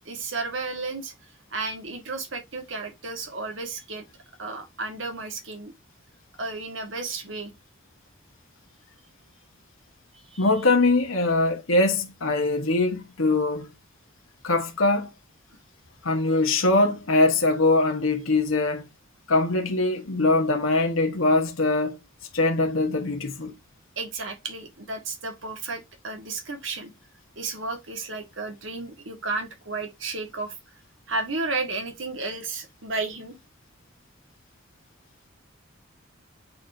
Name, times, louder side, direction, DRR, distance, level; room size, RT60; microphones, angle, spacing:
voice 1, 0.1-1.1 1.5-4.1 4.4-5.7 6.4-7.5 10.1-10.5 24.0-26.9 27.4-30.5 31.1-33.4, right 3 dB, 65° right, 1.9 m, -33 dB
voice 2, 10.4-13.7 14.4-15.1 16.0-18.8 19.3-22.0 22.3-23.5, left 2 dB, 85° left, 1.4 m, -22 dB
8.6 x 4.2 x 2.8 m
head